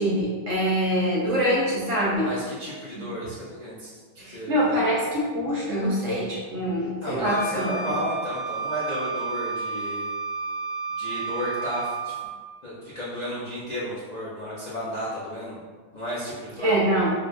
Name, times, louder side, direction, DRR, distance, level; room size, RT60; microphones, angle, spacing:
voice 1, 0.0-2.3 4.2-7.7 16.6-17.1, equal, 55° right, -6 dB, 1.0 m, -24 dB
voice 2, 2.2-3.9 4.2-4.8 7.0-10.1 11.0-12.1 12.6-15.6 15.9-16.7, equal, 85° left, -9 dB, 0.3 m, -33 dB
Wind instrument woodwind instrument, 7.2-12.4, right 4 dB, 70° left, 1.0 m, -31 dB
4.5 x 2.0 x 2.5 m, 1.5 s
omnidirectional pair, 1.7 m